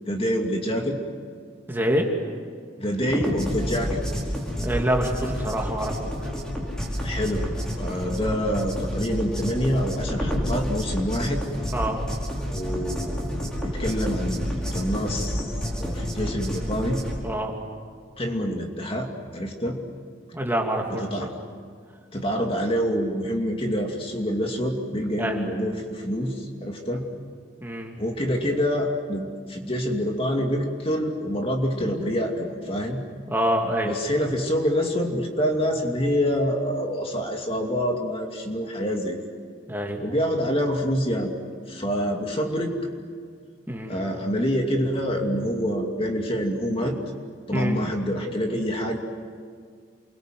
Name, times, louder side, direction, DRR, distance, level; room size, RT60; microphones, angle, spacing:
voice 1, 0.1-1.0 2.8-4.1 7.0-7.5 7.8-11.4 12.5-17.0 18.2-19.1 19.3-19.8 20.9-21.3 22.1-27.0 28.0-33.0 33.8-39.3 40.0-41.3 41.7-42.8 43.9-47.0 47.5-49.0, equal, 30° left, 2 dB, 2.6 m, -26 dB
voice 2, 1.7-2.1 4.6-6.1 7.8-8.0 11.7-12.0 17.2-17.5 20.3-21.3 25.2-25.4 27.6-27.9 33.3-33.9 39.7-40.0 43.7-44.0 47.5-47.8, equal, 10° right, 0 dB, 2.6 m, -26 dB
sound 1, 3.0-17.2, equal, 5° left, 5.1 m, -29 dB
29.0 x 23.0 x 7.8 m, 2.1 s
head